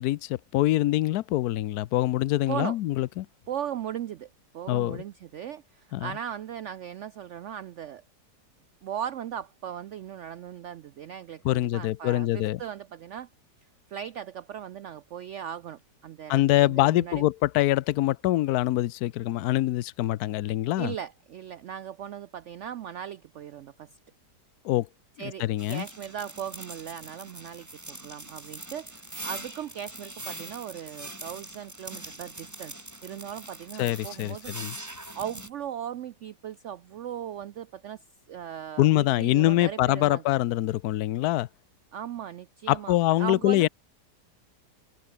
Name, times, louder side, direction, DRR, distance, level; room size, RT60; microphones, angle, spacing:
voice 1, 0.0-3.3 4.7-5.0 5.9-6.1 11.4-12.6 16.3-20.9 24.6-24.9 25.2-25.8 33.8-34.8 38.8-41.5 42.7-43.7, left 15 dB, 70° left, 1.1 m, -24 dB
voice 2, 3.5-8.0 8.8-13.3 13.9-17.3 20.8-24.0 25.2-32.7 33.0-34.8 35.1-40.2 41.9-43.7, right 9 dB, 70° right, 0.7 m, -38 dB
sound 1, 25.6-35.5, right 1 dB, 10° right, 1.6 m, -42 dB
omnidirectional pair, 1.8 m